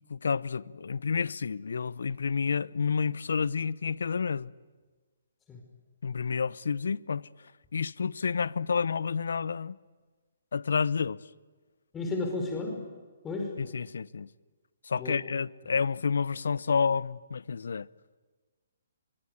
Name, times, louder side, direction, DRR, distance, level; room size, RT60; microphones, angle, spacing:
voice 1, 0.1-4.5 6.0-7.3 7.7-9.8 10.5-11.2 13.6-14.3 14.9-17.9, left 5 dB, 70° left, 0.8 m, -29 dB
voice 2, 11.9-12.9 13.2-13.6 15.0-15.2, left 2 dB, 15° left, 5.0 m, -33 dB
24.5 x 23.0 x 9.7 m
figure-of-eight pair, 135°, 0 cm